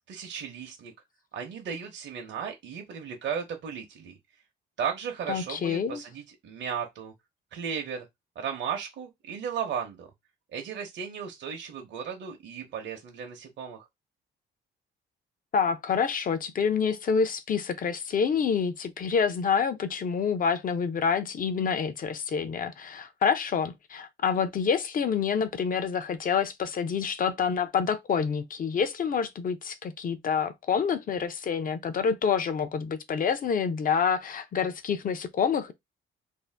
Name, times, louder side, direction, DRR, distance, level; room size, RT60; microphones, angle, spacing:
voice 1, 0.1-0.9 1.3-4.2 4.8-7.1 7.5-8.1 8.4-10.1 10.5-13.9, right 7 dB, 65° right, 0.8 m, -35 dB
voice 2, 5.3-6.0 15.5-35.7, left 6 dB, 45° left, 0.6 m, -27 dB
2.7 x 2.1 x 3.3 m
cardioid pair, 90°, 20 cm